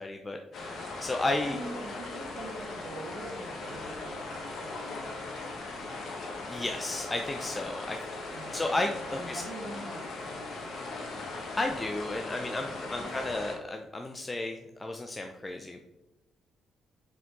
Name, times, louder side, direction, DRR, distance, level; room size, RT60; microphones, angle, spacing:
voice 1, 0.0-1.6 6.5-8.0 8.2-9.4 11.6-15.8, left 2 dB, 20° left, 3 dB, 0.6 m, -33 dB
sound 1, 0.5-13.6, left 3 dB, 65° left, 1.6 m, -39 dB
voice 2, 1.4-6.1 8.3-11.2 12.6-13.2, right 1 dB, 55° right, 0 dB, 2.0 m, -45 dB
5.6 x 5.2 x 4.0 m, 0.97 s
cardioid pair, 90°, 0 cm